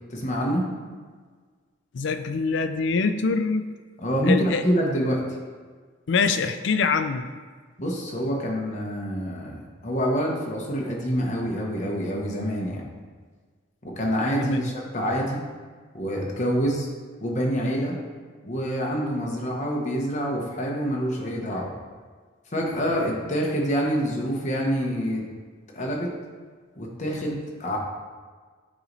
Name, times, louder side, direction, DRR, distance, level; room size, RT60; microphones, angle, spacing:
voice 1, 0.1-0.7 4.0-5.2 7.8-12.8 13.8-15.4 15.9-16.9 17.2-17.9 18.4-21.7 22.5-25.3 25.7-26.1 26.8-27.8, equal, 35° left, -1 dB, 0.9 m, -26 dB
voice 2, 1.9-3.7 4.2-4.6 6.1-7.3 14.4-14.7, left 4 dB, 65° left, 9 dB, 0.4 m, -24 dB
8.5 x 3.0 x 3.9 m, 1.5 s
head